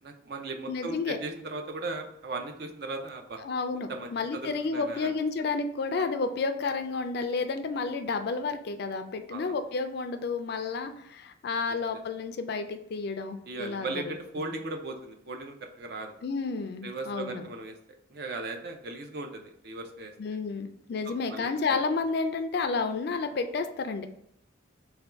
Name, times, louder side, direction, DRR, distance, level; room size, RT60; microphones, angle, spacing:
voice 1, 0.0-3.4 3.9-5.1 9.3-9.5 11.9-12.0 13.5-16.1 16.8-17.8 18.1-20.1 21.0-21.8, right 2 dB, 55° right, 4 dB, 0.5 m, -37 dB
voice 2, 0.7-1.2 3.4-14.2 16.2-17.4 20.2-24.1, left 4 dB, 55° left, 8 dB, 0.3 m, -31 dB
3.5 x 2.2 x 4.4 m, 0.74 s
head